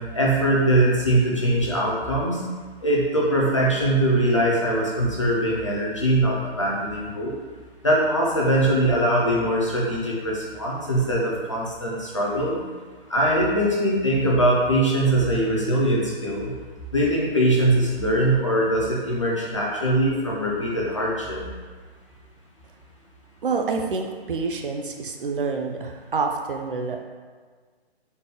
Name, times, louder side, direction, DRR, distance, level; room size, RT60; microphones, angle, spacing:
voice 1, 0.0-2.4 2.8-7.3 7.8-12.6 13.1-16.5 16.9-21.4, right 1 dB, 30° left, -4 dB, 0.5 m, -22 dB
voice 2, 23.4-27.0, right 4 dB, 55° right, 3 dB, 0.4 m, -27 dB
4.1 x 2.1 x 3.6 m, 1.5 s
hypercardioid pair, 180°, 32 cm